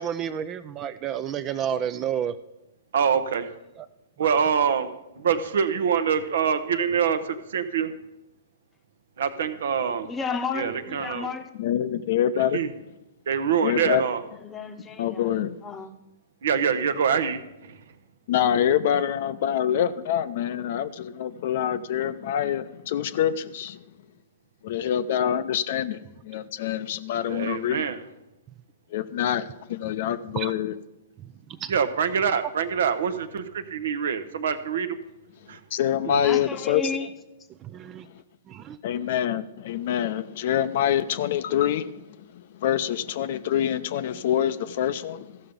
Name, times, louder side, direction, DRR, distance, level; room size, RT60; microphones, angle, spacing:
voice 1, 0.0-2.3 3.8-3.9 4.2-4.3 30.4-30.5 31.6-31.7 37.6-38.1 38.5-38.8, right 9 dB, 30° right, 13 dB, 0.4 m, -30 dB
voice 2, 2.9-3.5 4.2-7.9 9.2-10.1 10.5-11.3 12.5-12.7 13.3-14.2 16.4-17.8 27.3-28.0 31.7-35.0 35.5-35.6 36.1-36.2, right 7 dB, 65° right, 11 dB, 0.8 m, -25 dB
voice 3, 10.0-11.5 14.4-15.3 15.6-15.9 36.2-37.1, left 5 dB, 15° left, 7 dB, 0.9 m, -32 dB
voice 4, 11.6-12.6 13.6-14.0 15.0-15.6 18.3-23.8 24.6-27.8 28.9-30.7 35.7-36.8 38.8-42.0 42.3-45.4, left 10 dB, 55° left, 13 dB, 0.5 m, -26 dB
14.0 x 5.7 x 5.2 m, 0.95 s
hypercardioid pair, 115°, 0 cm